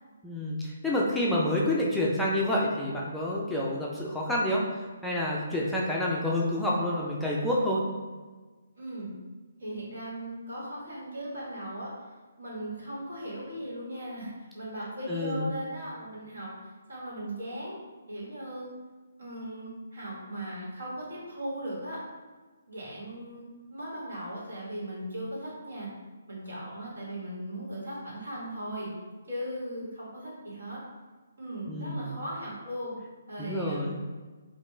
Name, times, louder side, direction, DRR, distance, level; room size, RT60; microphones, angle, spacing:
voice 1, 0.2-4.6 5.0-7.8 15.1-15.5 31.7-32.1 33.4-34.0, left 1 dB, 5° left, -6 dB, 0.4 m, -28 dB
voice 2, 8.8-9.1 9.6-12.1 12.4-17.7 18.1-18.7 19.2-22.0 22.7-25.9 26.3-28.9 29.3-30.8 31.4-33.0 33.3-33.9, right 1 dB, 70° right, -6 dB, 1.5 m, -38 dB
3.0 x 2.4 x 3.2 m, 1.3 s
figure-of-eight pair, 145°, 0 cm